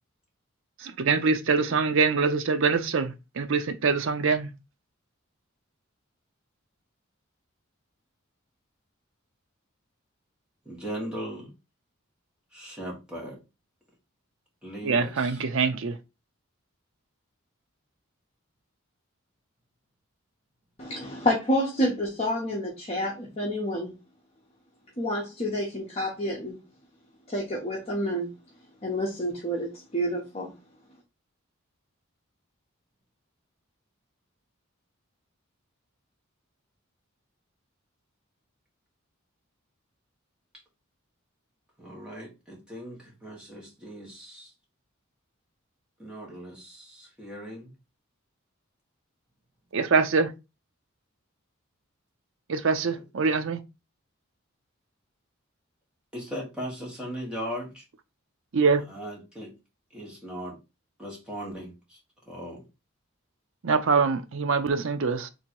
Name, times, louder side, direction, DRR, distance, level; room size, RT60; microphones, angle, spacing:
voice 1, 0.8-4.5 14.8-16.0 49.7-50.3 52.5-53.6 58.5-58.8 63.6-65.3, right 4 dB, 65° right, 0.6 m, -24 dB
voice 2, 10.6-11.5 12.5-13.4 14.6-15.4 41.8-44.5 46.0-47.7 52.8-53.0 56.1-57.8 58.9-59.5 59.9-60.6 61.0-62.0 62.3-62.6, equal, 5° right, 1.6 m, -38 dB
voice 3, 20.8-23.9 25.0-26.6 27.3-28.3 28.8-30.5, equal, 30° left, 0.9 m, -29 dB
3.7 x 2.7 x 4.5 m
head